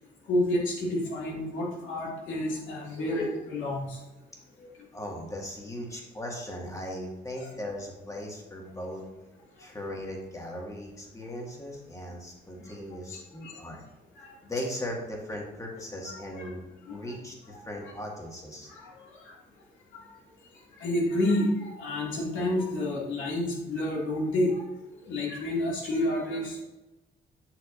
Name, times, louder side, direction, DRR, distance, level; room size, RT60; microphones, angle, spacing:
voice 1, 0.3-4.0 4.6-4.7 7.4-7.5 12.6-12.7 13.1-13.6 14.2-14.3 16.1-16.5 16.8-17.0 18.7-19.4 19.9-20.1 20.8-24.7 25.0-26.6, left 1 dB, 80° left, -4 dB, 2.2 m, -30 dB
voice 2, 4.9-9.0 9.6-13.8 14.4-18.7, left 1 dB, 15° left, -1 dB, 1.8 m, -38 dB
7.7 x 6.2 x 2.5 m, 1.0 s
cardioid pair, 90°, 20 cm